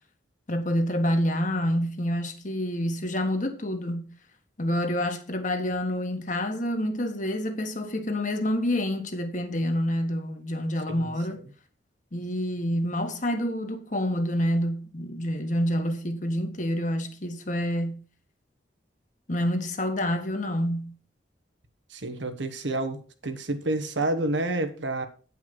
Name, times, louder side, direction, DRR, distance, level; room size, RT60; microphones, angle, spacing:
voice 1, 0.5-4.1 4.6-11.4 12.1-18.0 19.3-20.9, equal, 45° left, 1.5 m, -28 dB
voice 2, 21.9-25.1, right 2 dB, 85° right, 1.4 m, -29 dB
9.4 x 5.8 x 5.9 m
head